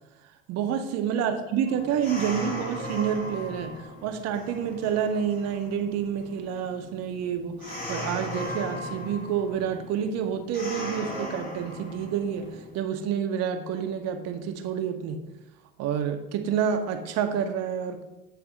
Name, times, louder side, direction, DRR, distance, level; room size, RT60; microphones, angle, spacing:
voice 1, 0.5-15.2 15.8-18.0, right 8 dB, 55° right, 7 dB, 0.9 m, -28 dB
sound 1, 1.7-12.8, left 1 dB, 25° left, 2.3 m, -38 dB
8.2 x 3.4 x 5.0 m, 1.0 s
supercardioid pair, 90°, 31 cm